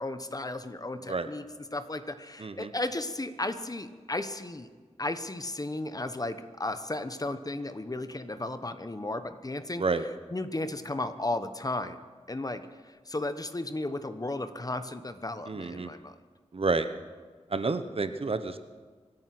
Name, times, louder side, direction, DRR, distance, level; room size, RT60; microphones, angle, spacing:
voice 1, 0.0-1.4 1.7-4.7 5.0-9.8 10.3-12.0 12.3-16.1, left 2 dB, 30° left, 10 dB, 1.1 m, -34 dB
voice 2, 2.4-2.7 9.8-10.0 15.5-15.9 16.5-16.9 17.5-18.6, right 3 dB, 50° right, 10 dB, 1.0 m, -29 dB
25.5 x 9.3 x 6.1 m, 1.5 s
wide cardioid pair, 65°, 12 cm